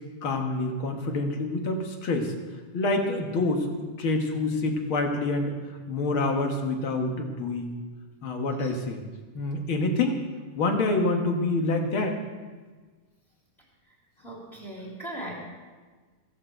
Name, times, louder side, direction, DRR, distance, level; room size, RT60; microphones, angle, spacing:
voice 1, 0.2-2.3 2.7-5.5 5.9-7.8 8.2-9.0 9.3-10.2 10.6-12.2, left 2 dB, 50° left, 3 dB, 2.0 m, -27 dB
voice 2, 14.2-15.3, right 1 dB, 15° left, -3 dB, 2.9 m, -38 dB
15.5 x 14.5 x 4.5 m, 1.4 s
omnidirectional pair, 3.6 m